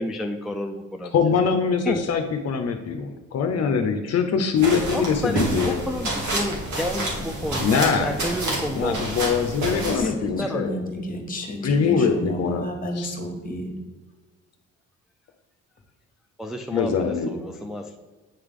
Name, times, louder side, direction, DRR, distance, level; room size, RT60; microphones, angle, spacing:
voice 1, 0.0-1.1 1.8-2.0 4.9-7.7 8.0-9.0 9.7-10.9 16.4-18.0, left 1 dB, ahead, 3 dB, 0.4 m, -30 dB
voice 2, 1.1-5.8 7.6-8.2 8.7-10.8 11.6-12.7 13.0-13.1 16.7-17.3, left 6 dB, 55° left, 5 dB, 0.6 m, -23 dB
sound 1, 4.6-10.0, right 1 dB, 70° right, 1.9 m, -28 dB
voice 3, 9.7-13.7, equal, 30° left, 3 dB, 1.4 m, -31 dB
8.8 x 3.3 x 3.7 m, 1.3 s
cardioid pair, 90°, 30 cm